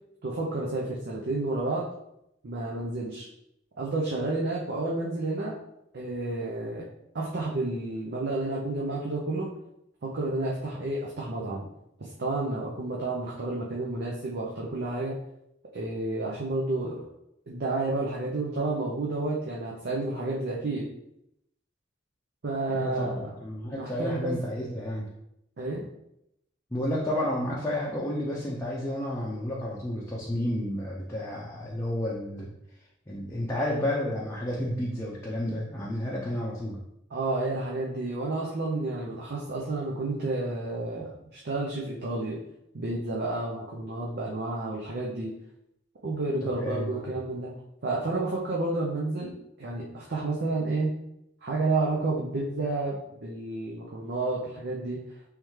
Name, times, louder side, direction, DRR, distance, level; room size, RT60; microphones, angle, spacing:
voice 1, 0.2-1.9 2.4-3.3 3.8-5.6 5.9-6.9 7.1-9.5 10.0-11.6 12.0-15.2 15.7-17.1 17.5-20.9 22.4-23.3 23.7-24.3 25.6-25.9 37.1-42.4 42.7-45.4 46.0-47.5 47.8-50.9 51.4-55.0, right 2 dB, 55° right, -3 dB, 0.6 m, -30 dB
voice 2, 22.7-25.1 26.7-32.5 33.1-36.8 46.4-47.1, left 1 dB, 15° left, -5 dB, 0.5 m, -31 dB
3.5 x 3.2 x 3.1 m, 0.81 s
head